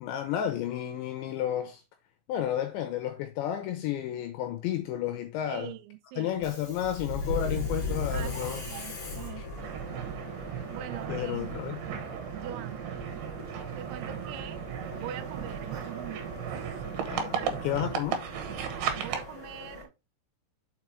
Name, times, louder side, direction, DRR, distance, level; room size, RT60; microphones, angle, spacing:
voice 1, 0.0-1.8 2.3-5.7 6.2-8.6 9.4-9.5 11.1-12.0 17.1-18.2, left 11 dB, 85° left, 2.7 m, -32 dB
voice 2, 5.5-6.5 8.1-9.8 10.4-11.6 12.3-12.9 13.7-14.6 14.9-16.8 17.2-17.9 19.0-19.9, right 13 dB, 85° right, 3.3 m, -43 dB
Subway metro underground, 6.3-19.8, left 2 dB, 30° left, 2.9 m, -39 dB
sound 1, 9.6-19.3, right 8 dB, 70° right, 2.6 m, -35 dB
6.8 x 4.9 x 4.5 m
omnidirectional pair, 6.0 m